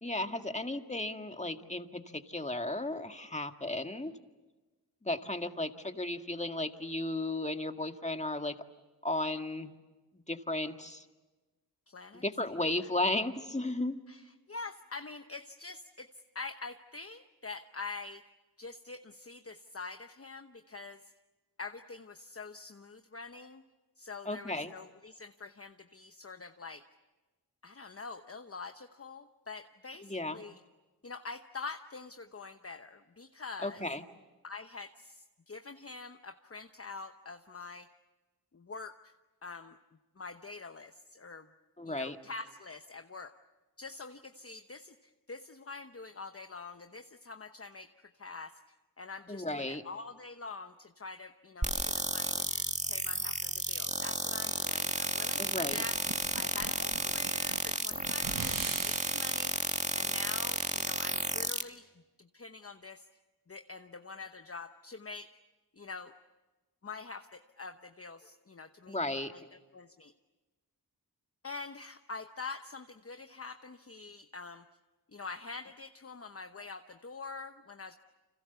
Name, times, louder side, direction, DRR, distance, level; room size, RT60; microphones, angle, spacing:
voice 1, 0.0-4.1 5.0-8.5 9.0-9.7 10.3-11.0 12.2-14.0 24.3-24.7 30.0-30.4 33.6-34.0 41.8-42.2 49.3-49.8 55.4-55.8 68.9-69.3, left 2 dB, 15° left, 6 dB, 1.9 m, -34 dB
voice 2, 11.9-12.2 14.1-16.1 16.3-18.2 18.6-21.1 21.6-23.6 24.0-26.8 27.6-30.6 31.0-33.8 34.4-37.9 38.5-39.1 39.4-39.8 40.2-41.5 41.8-43.4 43.8-48.6 49.0-52.5 52.9-56.0 56.3-59.6 59.9-61.8 62.2-63.1 63.5-65.3 65.7-66.1 66.8-69.0 69.3-70.1 71.4-74.6 75.1-78.0, left 4 dB, 35° left, 7 dB, 1.0 m, -45 dB
sound 1, 51.6-61.6, right 1 dB, 15° right, 1.9 m, -32 dB
sound 2, 55.7-59.6, right 5 dB, 55° right, 1.2 m, -43 dB
29.5 x 26.5 x 7.0 m, 1.2 s
cardioid pair, 45°, 40 cm